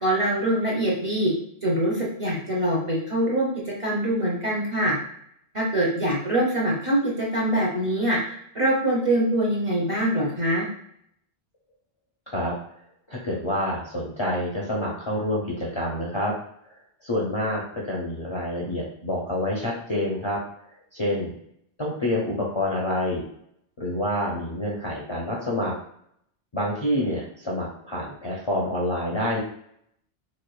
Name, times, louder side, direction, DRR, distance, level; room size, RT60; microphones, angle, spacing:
voice 1, 0.0-1.3 1.6-4.9 5.5-8.2 8.5-10.7, right 1 dB, 35° right, -4 dB, 0.7 m, -24 dB
voice 2, 13.1-16.3 17.0-20.4 20.9-21.4 21.8-23.2 23.8-25.7 26.5-29.4, left 1 dB, 35° left, -4 dB, 0.5 m, -27 dB
4.2 x 2.4 x 2.3 m, 0.69 s
omnidirectional pair, 1.1 m